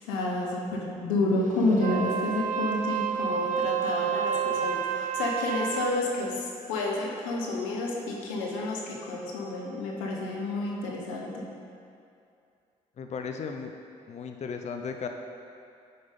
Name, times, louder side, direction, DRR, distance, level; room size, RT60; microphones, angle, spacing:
voice 1, 0.1-11.4, left 2 dB, 90° left, -1 dB, 0.9 m, -30 dB
Wind instrument woodwind instrument, 1.7-6.0, right 8 dB, 50° right, 0.5 m, -30 dB
voice 2, 13.0-13.7 14.1-15.1, left 6 dB, 40° left, 5 dB, 0.5 m, -35 dB
7.8 x 5.2 x 3.6 m, 2.5 s
hypercardioid pair, 50°, 17 cm